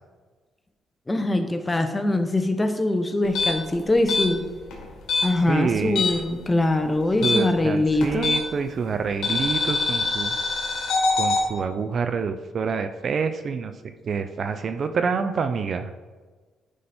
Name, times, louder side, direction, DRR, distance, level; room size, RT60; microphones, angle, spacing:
voice 1, 1.1-4.4 5.2-8.3, left 2 dB, 20° left, 7 dB, 0.9 m, -23 dB
sound 1, 3.2-6.4 6.6-8.7 9.2-11.4, left 3 dB, 80° left, 1.9 m, -24 dB
voice 2, 5.5-6.0 7.2-10.3 11.2-15.9, right 5 dB, 50° right, 9 dB, 0.5 m, -27 dB
9.9 x 5.0 x 4.3 m, 1.4 s
cardioid pair, 90°, 0 cm